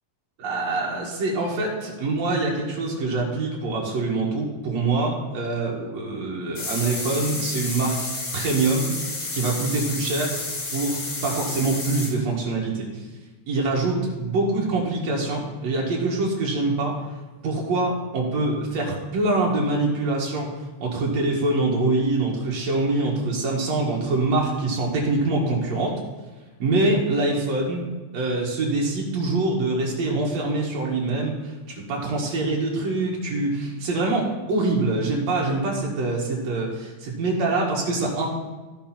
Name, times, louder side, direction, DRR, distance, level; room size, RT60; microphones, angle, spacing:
voice 1, 0.4-8.0 8.3-8.9 9.3-10.4 10.7-13.1 13.5-17.1 17.4-20.5 20.8-26.0 26.6-27.8 28.1-38.3, right 2 dB, 65° right, -2 dB, 3.1 m, -24 dB
sound 1, 6.5-12.1, left 3 dB, 45° left, 2.1 m, -31 dB
15.5 x 5.4 x 4.4 m, 1.2 s
omnidirectional pair, 3.4 m